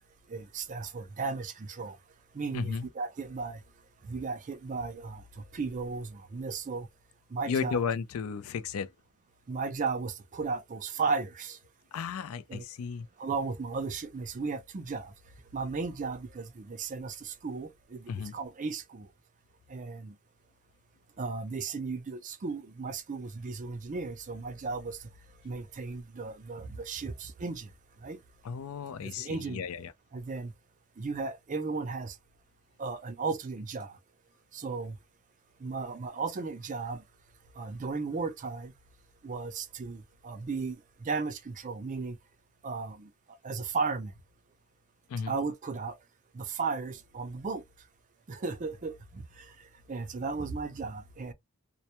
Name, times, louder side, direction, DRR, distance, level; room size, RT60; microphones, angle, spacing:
voice 1, 0.3-2.0 2.3-3.6 4.0-5.2 5.5-6.9 7.3-7.8 9.5-11.6 12.5-12.6 13.2-15.1 15.5-19.1 19.7-20.1 21.2-25.0 25.4-27.7 28.0-28.2 29.0-29.6 30.1-30.5 31.0-32.2 32.8-33.9 34.5-35.0 35.6-37.0 37.6-38.7 39.2-40.8 41.0-42.2 42.6-43.1 43.4-44.1 45.3-46.0 46.3-47.6 48.3-49.5 49.9-51.3, right 4 dB, 35° right, 0.4 m, -35 dB
voice 2, 2.5-2.8 7.5-8.9 11.9-13.1 18.1-18.3 28.4-29.9 45.1-45.3, left 6 dB, 70° left, 0.4 m, -34 dB
2.1 x 2.1 x 2.8 m
head